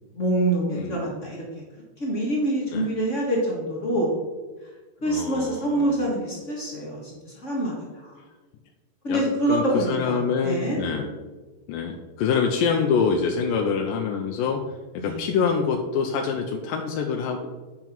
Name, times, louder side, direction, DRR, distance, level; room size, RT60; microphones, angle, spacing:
voice 1, 0.1-1.4 2.0-4.2 5.0-8.2 9.0-10.8 15.0-15.2, right 1 dB, 55° left, -4 dB, 0.8 m, -26 dB
voice 2, 0.7-1.1 2.7-2.9 5.0-6.0 9.1-9.2 9.5-11.1 11.7-14.6 14.9-17.5, left 6 dB, 80° left, 2 dB, 2.2 m, -25 dB
9.2 x 5.7 x 4.5 m, 1.3 s
omnidirectional pair, 4.1 m